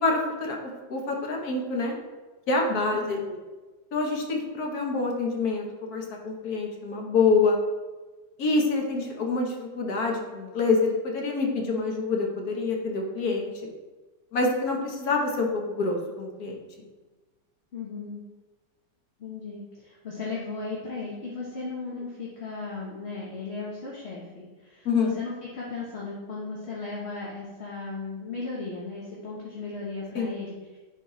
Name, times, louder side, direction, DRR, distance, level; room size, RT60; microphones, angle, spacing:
voice 1, 0.0-2.0 2.5-3.4 3.9-7.6 8.4-13.5 14.3-16.6 24.8-25.1 30.1-30.3, left 3 dB, 60° left, 1 dB, 1.5 m, -26 dB
voice 2, 17.7-18.2 19.2-30.8, left 3 dB, 40° left, -5 dB, 1.2 m, -36 dB
10.0 x 4.2 x 3.1 m, 1.2 s
omnidirectional pair, 1.9 m